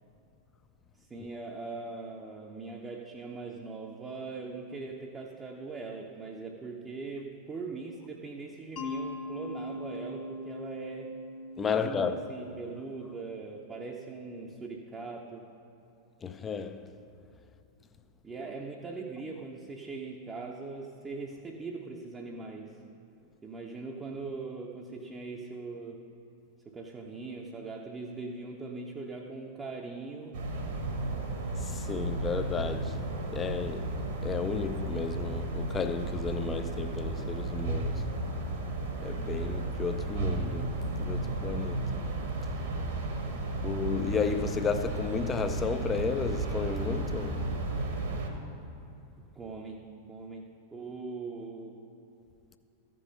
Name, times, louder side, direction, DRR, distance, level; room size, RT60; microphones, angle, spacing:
voice 1, 1.1-11.2 11.7-15.5 18.2-22.8 23.4-26.1 26.7-30.4 49.4-51.8, right 3 dB, 15° right, 0.7 m, -41 dB
Mallet percussion, 8.8-13.5, left 1 dB, 35° left, 0.9 m, -41 dB
voice 2, 11.6-12.2 16.2-16.9 31.5-34.0 34.2-38.1 39.0-42.0 43.6-47.6, left 5 dB, 20° left, 0.5 m, -33 dB
sound 1, 30.3-48.3, right 2 dB, 55° right, 1.2 m, -33 dB
14.0 x 5.4 x 5.4 m
figure-of-eight pair, 90°, 0 cm